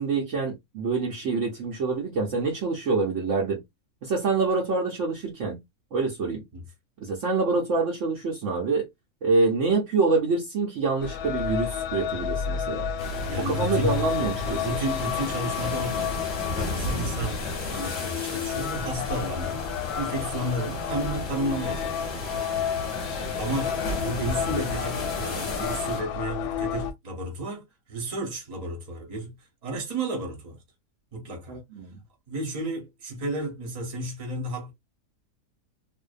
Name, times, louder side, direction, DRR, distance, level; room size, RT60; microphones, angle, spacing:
voice 1, 0.0-3.6 4.0-5.6 5.9-6.4 7.0-8.9 9.2-12.9 13.4-14.7 31.5-32.0, right 4 dB, 60° right, 0.9 m, -26 dB
sound 1, 11.0-26.9, left 8 dB, 75° left, 1.0 m, -31 dB
sound 2, 13.0-26.0, left 2 dB, 50° left, 1.0 m, -34 dB
voice 2, 13.3-14.0 14.4-16.2 16.5-17.4 17.7-19.7 20.0-22.2 22.7-23.0 23.4-29.4 29.6-30.6 31.1-31.6 32.3-34.7, right 2 dB, 30° right, 0.8 m, -32 dB
2.6 x 2.1 x 2.4 m
omnidirectional pair, 1.6 m